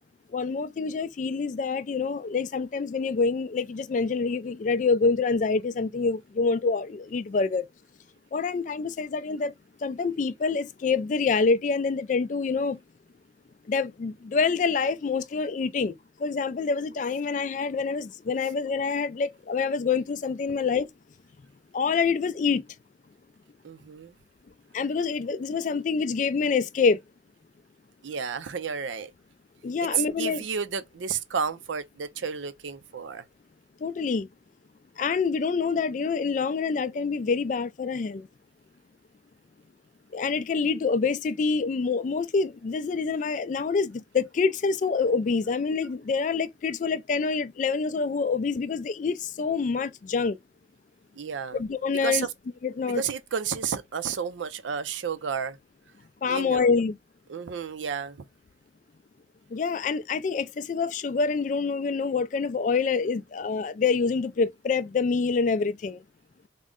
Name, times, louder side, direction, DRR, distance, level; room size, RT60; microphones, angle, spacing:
voice 1, 0.3-7.7 8.3-9.5 9.8-12.8 13.7-15.9 16.2-20.9 21.7-22.6 24.7-27.0 29.6-30.4 33.8-34.3 35.0-38.3 40.1-50.4 51.5-52.3 52.6-53.0 56.2-57.0 59.5-66.0, left 4 dB, 45° left, 0.3 m, -26 dB
voice 2, 23.6-24.1 28.0-29.1 29.8-33.2 51.2-51.6 52.0-52.3 52.9-55.6 56.3-56.6 57.3-58.2, right 7 dB, 90° right, 0.5 m, -31 dB
3.7 x 2.1 x 3.6 m
head